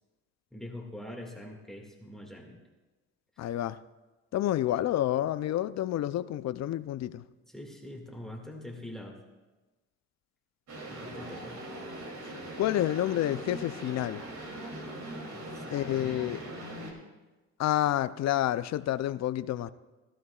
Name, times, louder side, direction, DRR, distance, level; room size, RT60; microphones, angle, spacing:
voice 1, 0.5-2.6 7.5-9.2 10.8-11.6 15.3-16.8, left 1 dB, ahead, 1 dB, 2.0 m, -44 dB
voice 2, 3.4-3.8 4.3-7.2 12.6-14.2 15.7-16.4 17.6-19.7, left 13 dB, 60° left, 14 dB, 0.5 m, -29 dB
sound 1, 10.7-16.9, right 1 dB, 60° right, 2.9 m, -41 dB
17.0 x 12.5 x 2.4 m, 1.2 s
cardioid pair, 90°, 30 cm